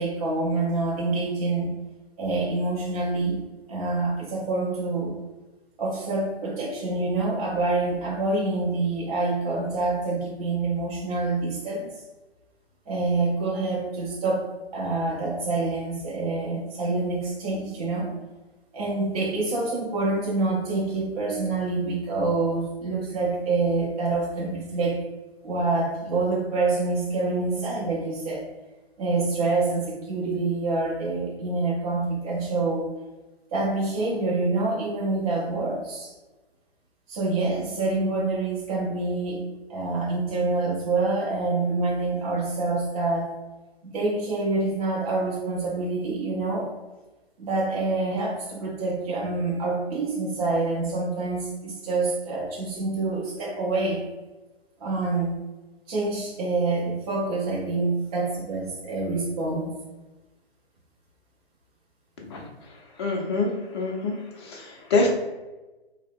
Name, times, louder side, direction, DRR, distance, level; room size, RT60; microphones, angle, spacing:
voice 1, 0.0-1.7 2.2-3.4 3.7-5.2 5.8-11.9 12.9-18.1 18.7-25.0 25.4-28.4 29.0-32.9 33.5-36.1 37.1-39.4 39.7-43.3 43.8-46.7 47.4-54.0 54.8-55.4 55.9-59.7, right 3 dB, 35° right, -4 dB, 0.6 m, -26 dB
voice 2, 63.0-63.5 63.7-64.1 64.4-65.1, left 3 dB, 25° left, -1 dB, 0.5 m, -25 dB
3.3 x 2.0 x 3.4 m, 1.1 s
figure-of-eight pair, 130°, 31 cm